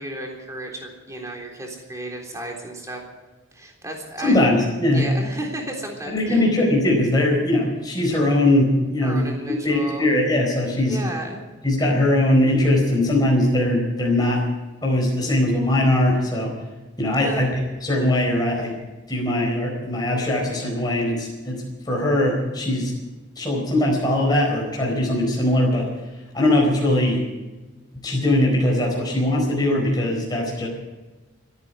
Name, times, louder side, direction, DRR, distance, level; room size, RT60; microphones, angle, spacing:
voice 1, 0.0-3.0 3.5-4.4 4.9-6.4 9.0-10.1 10.9-11.4 17.2-17.4, right 1 dB, 15° right, 0 dB, 3.5 m, -33 dB
voice 2, 4.2-5.0 6.1-9.2 9.6-11.0 11.6-14.4 14.8-16.5 17.0-17.5 17.8-18.8 19.1-22.9 23.4-25.9 26.3-27.2 28.0-30.7, left 1 dB, 20° left, -2 dB, 4.5 m, -20 dB
28.0 x 9.8 x 4.8 m, 1.2 s
head